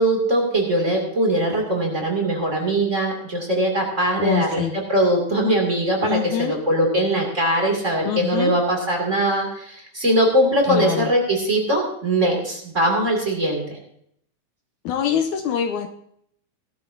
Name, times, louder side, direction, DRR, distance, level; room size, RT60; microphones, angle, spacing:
voice 1, 0.0-4.6 4.9-13.8, right 1 dB, 25° right, 0 dB, 2.6 m, -21 dB
voice 2, 4.2-4.7 6.0-6.6 8.1-8.5 10.7-11.1 14.8-15.9, left 8 dB, 75° left, 5 dB, 2.1 m, -24 dB
17.5 x 12.0 x 2.7 m, 0.70 s
omnidirectional pair, 3.7 m